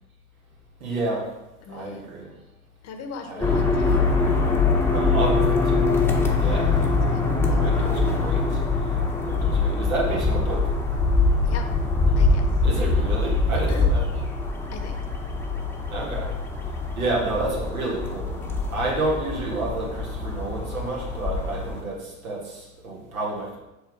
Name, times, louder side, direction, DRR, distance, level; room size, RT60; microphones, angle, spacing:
voice 1, 0.8-1.3 1.7-2.3 3.3-3.8 4.9-5.9 6.4-6.9 7.5-8.6 9.2-10.7 12.6-14.0 15.9-16.3 17.0-23.6, right 2 dB, 85° right, -2 dB, 1.8 m, -30 dB
voice 2, 1.6-2.0 2.8-4.0 6.4-7.9 11.4-11.6 12.1-12.5 13.7-13.9 14.7-15.0, left 5 dB, 40° left, 5 dB, 1.0 m, -39 dB
sound 1, 3.4-21.8, left 3 dB, 5° left, 0.9 m, -23 dB
6.5 x 3.2 x 4.7 m, 0.98 s
hypercardioid pair, 85°, 42 cm